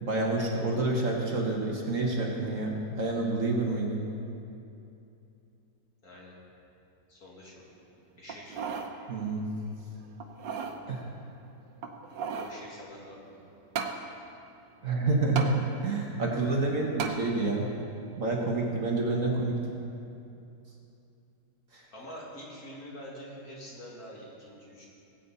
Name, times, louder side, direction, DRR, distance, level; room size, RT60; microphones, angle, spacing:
voice 1, 0.0-4.0 9.1-9.5 10.9-11.1 14.8-17.7 18.2-19.6 21.7-21.8, right 2 dB, 50° right, -1 dB, 1.6 m, -28 dB
voice 2, 6.0-6.3 7.1-7.7 8.2-8.8 12.3-13.6 21.9-24.8, equal, 55° left, -5 dB, 2.9 m, -46 dB
sound 1, 8.3-8.9 9.4-9.5 10.2-10.8 11.8-12.6 13.8-14.0 15.4-15.5 17.0-17.2 17.8-17.9, right 6 dB, 90° right, 1.5 m, -34 dB
19.0 x 8.5 x 4.1 m, 2.7 s
omnidirectional pair, 1.9 m